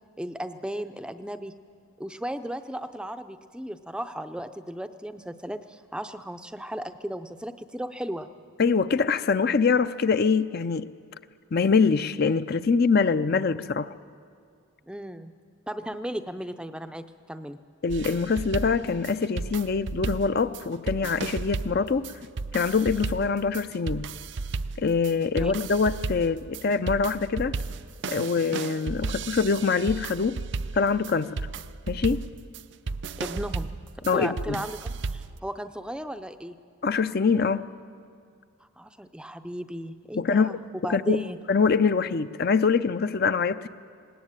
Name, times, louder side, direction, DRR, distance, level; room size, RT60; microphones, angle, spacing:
voice 1, 0.2-1.5 2.0-8.3 14.9-15.3 15.7-17.6 25.3-25.5 33.2-33.7 34.1-36.6 38.8-40.6 40.8-41.4, right 1 dB, 5° right, 9 dB, 0.5 m, -35 dB
voice 2, 8.6-10.9 11.5-13.9 17.8-22.1 22.5-24.1 24.8-27.6 28.1-30.4 30.7-31.4 31.9-32.3 34.1-34.6 36.8-37.6 40.1-40.6 40.9-43.7, left 5 dB, 45° left, 12 dB, 0.5 m, -24 dB
sound 1, 17.9-35.4, right 4 dB, 55° right, 0.5 m, -34 dB
20.0 x 18.5 x 8.9 m, 2.2 s
head